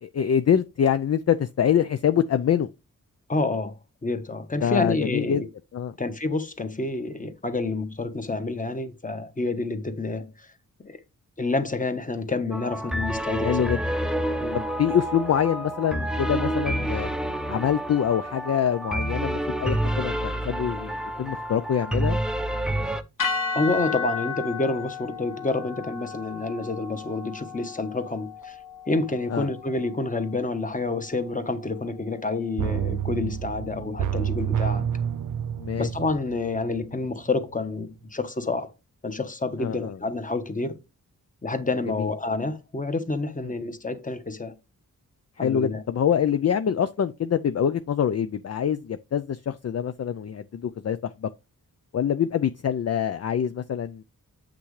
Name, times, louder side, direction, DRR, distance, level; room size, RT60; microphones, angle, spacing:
voice 1, 0.0-2.7 4.6-5.4 5.7-5.9 13.4-13.8 14.5-17.1 17.5-22.2 29.3-29.5 35.6-35.9 39.6-40.0 42.0-42.1 43.4-43.5 45.4-51.3 51.9-54.0, left 8 dB, 50° left, 0.5 m, -25 dB
voice 2, 3.3-3.7 4.0-5.5 6.0-10.5 10.8-11.0 11.4-13.7 14.4-14.6 23.5-28.6 28.9-34.8 35.8-38.7 39.0-40.8 41.4-44.5 45.4-45.8, left 3 dB, 25° left, 1.2 m, -28 dB
sound 1, 12.5-23.0, right 1 dB, ahead, 0.7 m, -28 dB
sound 2, 23.2-31.5, left 5 dB, 70° left, 1.9 m, -34 dB
sound 3, 32.6-37.3 37.6-37.7, right 9 dB, 65° right, 0.5 m, -29 dB
8.4 x 6.0 x 3.2 m
wide cardioid pair, 100°, 33 cm